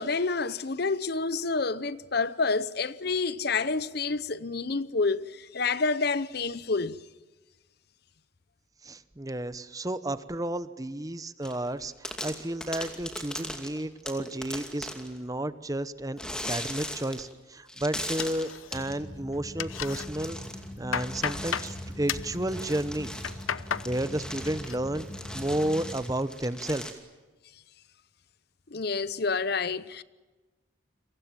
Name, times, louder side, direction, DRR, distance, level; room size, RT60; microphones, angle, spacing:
voice 1, 0.0-7.0 28.7-30.0, left 4 dB, 50° left, 0.8 m, -28 dB
voice 2, 8.8-16.2 16.5-20.4 20.8-23.1 23.8-25.0 25.3-26.9, right 1 dB, 15° right, 0.9 m, -32 dB
sound 1, 11.4-11.7 12.0-15.2 16.2-17.3 17.7-18.9 19.7-20.7 20.9-26.9, left 1 dB, 5° left, 2.5 m, -39 dB
sound 2, 18.2-19.0 19.3-20.1 20.5-21.7 22.1-22.4 23.0-23.9 24.3-24.8 25.1-25.6, left 8 dB, 85° left, 0.8 m, -34 dB
sound 3, 18.7-26.0, equal, 25° left, 2.2 m, -42 dB
29.5 x 24.0 x 7.5 m
head